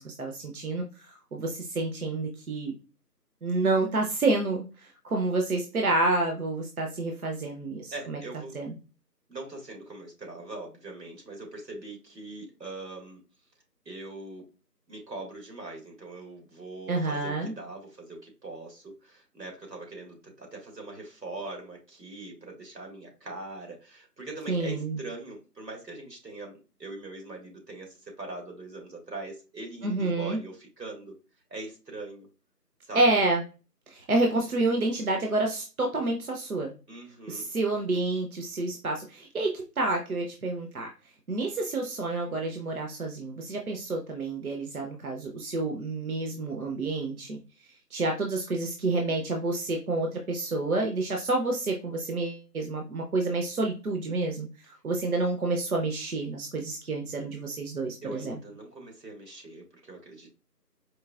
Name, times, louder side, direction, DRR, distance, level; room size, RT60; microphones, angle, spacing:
voice 1, 0.0-2.7 3.4-8.2 8.5-8.7 16.9-17.5 24.5-25.0 29.8-30.4 32.9-33.4 33.9-36.7 37.3-40.9 41.3-47.4 47.9-58.4, right 2 dB, 60° right, 2 dB, 0.7 m, -29 dB
voice 2, 7.9-8.6 9.3-13.2 13.9-14.5 14.9-31.1 31.5-32.3 32.8-33.1 36.9-37.5 58.0-60.3, right 2 dB, 85° right, 1 dB, 1.8 m, -42 dB
4.6 x 2.7 x 2.3 m, 0.33 s
figure-of-eight pair, 165°, 49 cm